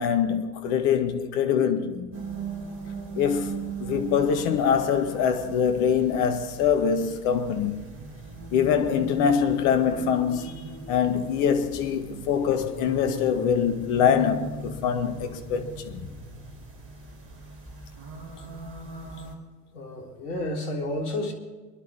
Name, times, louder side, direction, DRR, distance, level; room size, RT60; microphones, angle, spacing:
voice 1, 0.0-2.1 3.2-7.8 8.5-10.6 10.9-16.0, left 7 dB, 50° left, 1.9 m, -24 dB
sound 1, 2.1-19.3, right 4 dB, 25° right, 4.7 m, -39 dB
voice 2, 19.7-21.3, left 1 dB, 65° left, 3.7 m, -31 dB
26.5 x 11.5 x 3.6 m
figure-of-eight pair, 85°, 49 cm